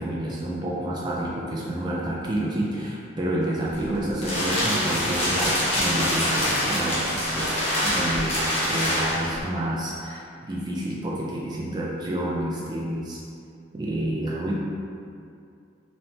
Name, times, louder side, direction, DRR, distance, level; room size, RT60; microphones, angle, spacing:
voice 1, 0.0-8.4 8.7-13.2 13.7-14.5, right 1 dB, 20° right, -5 dB, 0.3 m, -29 dB
sound 1, 3.7-9.4, equal, 30° left, 0.6 m, -25 dB
3.0 x 2.1 x 2.7 m, 2.4 s
head